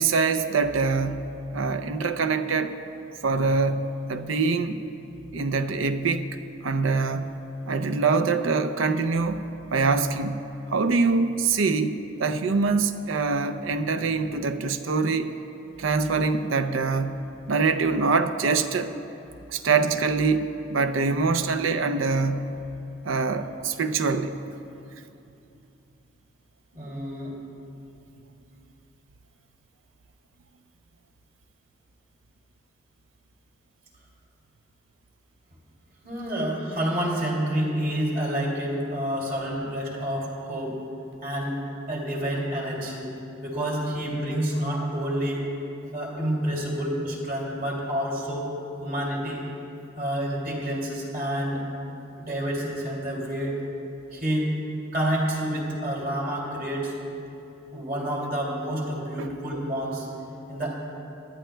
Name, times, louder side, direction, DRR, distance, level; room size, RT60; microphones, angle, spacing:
voice 1, 0.0-2.8 3.2-4.8 5.3-6.4 6.6-7.4 7.7-9.4 9.7-15.3 15.8-18.9 19.5-22.6 23.1-24.4 59.2-59.3, right 4 dB, 80° right, 10 dB, 0.5 m, -24 dB
voice 2, 26.7-27.4 36.0-40.8 41.2-43.1 43.4-45.5 45.9-48.4 48.8-49.5 50.0-51.6 52.2-53.6 54.1-54.5 54.9-57.0 57.7-60.1 60.5-60.7, right 1 dB, 45° right, -3 dB, 2.5 m, -28 dB
21.0 x 11.5 x 2.2 m, 2.8 s
head